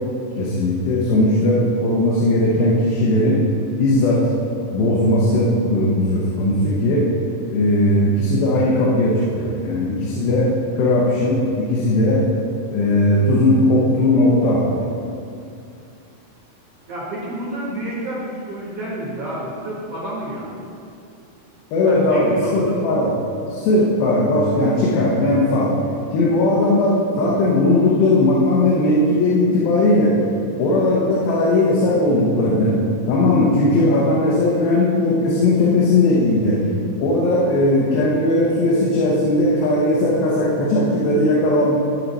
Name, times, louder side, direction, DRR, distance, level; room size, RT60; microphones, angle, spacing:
voice 1, 0.4-3.4 3.8-4.2 4.7-7.0 7.5-10.5 10.8-12.2 12.7-14.9 21.7-23.1 23.5-25.7 26.1-30.1 30.6-32.8 33.1-36.6 37.0-41.8, left 1 dB, 80° left, -5 dB, 2.8 m, -18 dB
voice 2, 16.9-20.6 21.8-22.8, right 1 dB, 60° right, -6 dB, 1.7 m, -29 dB
13.0 x 4.6 x 4.1 m, 2.4 s
omnidirectional pair, 4.3 m